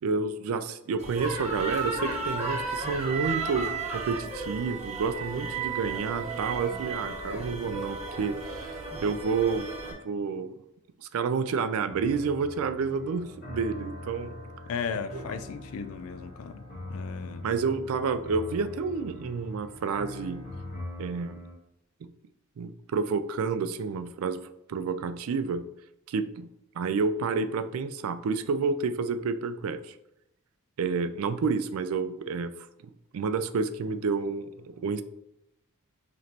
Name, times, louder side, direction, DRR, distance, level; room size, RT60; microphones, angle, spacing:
voice 1, 0.0-10.5 11.0-14.4 15.1-15.2 17.4-20.4 21.0-21.4 22.0-22.1 22.6-24.4 24.7-25.6 26.1-26.5 26.8-29.9 30.8-32.5 32.8-35.0, right 5 dB, 70° right, 11 dB, 0.4 m, -30 dB
sound 1, 1.0-9.9, right 3 dB, 30° right, 1.1 m, -34 dB
sound 2, 11.9-21.5, left 1 dB, 40° left, 1.0 m, -42 dB
voice 2, 14.7-16.6 16.9-17.4, left 6 dB, 65° left, 11 dB, 0.3 m, -35 dB
5.0 x 3.0 x 2.8 m, 0.82 s
head